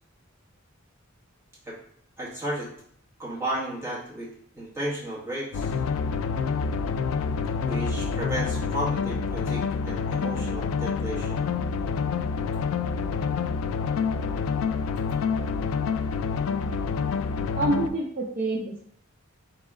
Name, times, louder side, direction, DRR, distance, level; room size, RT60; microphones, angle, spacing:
voice 1, 2.2-2.7 3.2-4.3 4.5-5.7 7.6-11.4, right 1 dB, 15° right, -8 dB, 1.6 m, -33 dB
sound 1, 5.5-17.9, left 5 dB, 80° left, 0.3 m, -27 dB
voice 2, 17.6-18.8, right 2 dB, 45° right, -2 dB, 0.6 m, -27 dB
4.0 x 3.0 x 3.7 m, 0.64 s
head